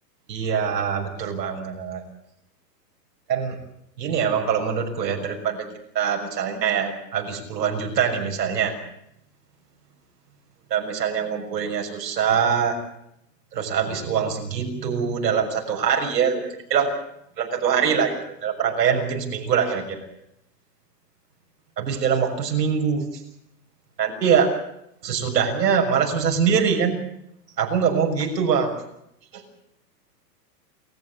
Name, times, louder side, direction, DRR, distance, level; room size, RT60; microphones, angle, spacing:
voice 1, 0.3-2.0 3.3-3.6 4.0-5.7 5.9-8.7 10.7-12.8 13.5-16.4 16.7-16.9 17.4-20.0 21.8-23.2 24.0-24.5 25.0-27.0 27.6-28.8 29.3-29.4, right 7 dB, 80° right, 3 dB, 6.6 m, -23 dB
27.5 x 14.5 x 8.5 m, 0.78 s
hypercardioid pair, 135°, 49 cm